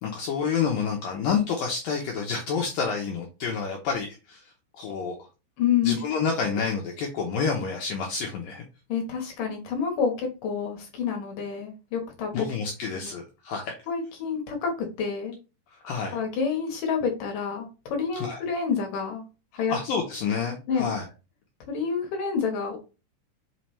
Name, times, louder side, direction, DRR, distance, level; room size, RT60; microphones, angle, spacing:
voice 1, 0.0-5.2 5.8-8.6 12.3-13.7 15.7-16.2 18.2-18.4 19.7-21.0, left 5 dB, 85° left, 1 dB, 2.0 m, -29 dB
voice 2, 5.6-6.0 8.9-12.6 13.0-13.1 13.9-15.4 16.1-19.2 19.5-19.8 20.7-20.9 21.7-22.8, left 6 dB, 65° left, 2 dB, 2.2 m, -28 dB
5.7 x 5.5 x 3.2 m, 0.30 s
omnidirectional pair, 5.4 m